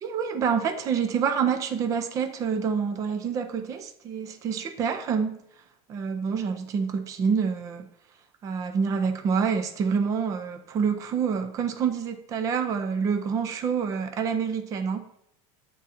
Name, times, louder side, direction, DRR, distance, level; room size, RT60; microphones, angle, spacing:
voice 1, 0.0-5.4 5.9-7.9 8.4-15.1, right 6 dB, 20° right, 8 dB, 0.4 m, -27 dB
8.9 x 3.8 x 4.1 m, 0.71 s
supercardioid pair, 175°, 19 cm